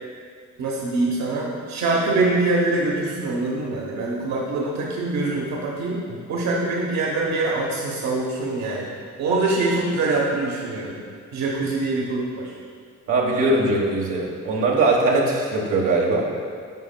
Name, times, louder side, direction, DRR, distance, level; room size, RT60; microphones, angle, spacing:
voice 1, 0.6-8.9 9.2-11.0 11.3-12.5, right 2 dB, 65° right, -3 dB, 1.0 m, -24 dB
voice 2, 13.1-16.3, right 2 dB, 80° right, -3 dB, 1.2 m, -21 dB
9.6 x 5.2 x 2.2 m, 2.2 s
cardioid pair, 90°, 30 cm